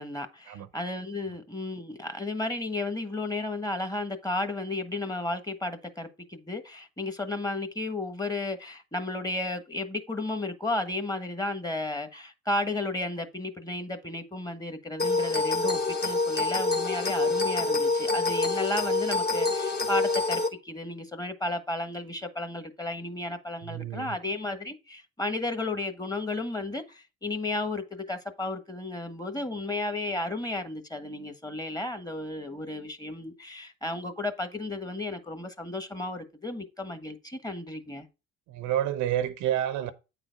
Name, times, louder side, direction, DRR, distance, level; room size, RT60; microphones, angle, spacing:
voice 1, 0.0-38.1, left 2 dB, 10° left, 1.4 m, -33 dB
sound 1, 15.0-20.5, left 3 dB, 30° left, 1.5 m, -26 dB
voice 2, 23.6-24.2 38.5-39.9, right 11 dB, 75° right, 0.9 m, -29 dB
8.7 x 4.0 x 5.2 m
supercardioid pair, 85°, 31 cm